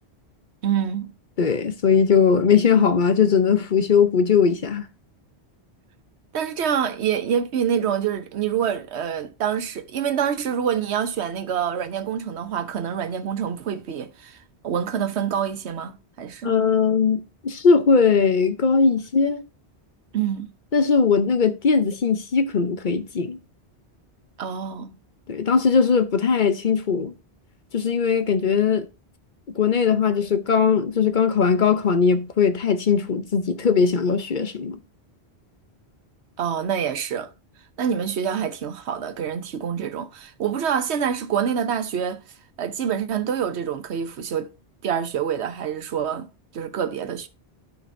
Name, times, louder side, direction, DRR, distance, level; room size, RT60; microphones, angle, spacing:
voice 1, 0.6-1.1 6.3-16.6 20.1-20.5 24.4-25.0 36.4-37.3 37.8-42.2 42.6-44.5 44.8-46.3 46.5-47.3, right 8 dB, 85° right, 1.1 m, -26 dB
voice 2, 1.4-4.9 16.4-19.4 20.7-23.4 25.3-27.1 27.7-28.9 29.6-34.8, left 6 dB, 50° left, 0.9 m, -19 dB
12.5 x 5.1 x 2.6 m
omnidirectional pair, 1.1 m